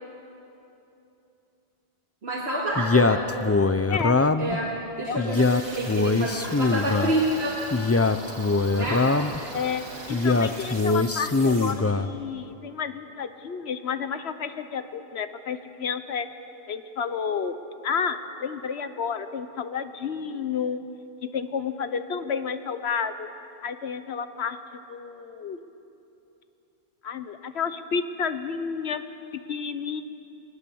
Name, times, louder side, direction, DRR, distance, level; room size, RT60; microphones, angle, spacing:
voice 1, 2.2-3.3 4.4-7.6 8.7-9.1, right 1 dB, 80° right, -4 dB, 2.3 m, -28 dB
Male speech man speaking, 2.8-4.6 5.2-7.1 7.7-9.4 10.1-12.1, left 3 dB, 25° left, 0.3 m, -22 dB
voice 2, 5.1-5.4 9.5-16.3 16.7-17.5 17.8-20.8 21.2-23.3 23.6-24.6 24.9-25.6 27.0-29.0 29.5-30.0, left 6 dB, 80° left, 10 dB, 1.2 m, -31 dB
sound 1, 5.3-11.7, right 1 dB, 40° right, 2.4 m, -40 dB
21.0 x 19.0 x 7.1 m, 2.9 s
omnidirectional pair, 1.1 m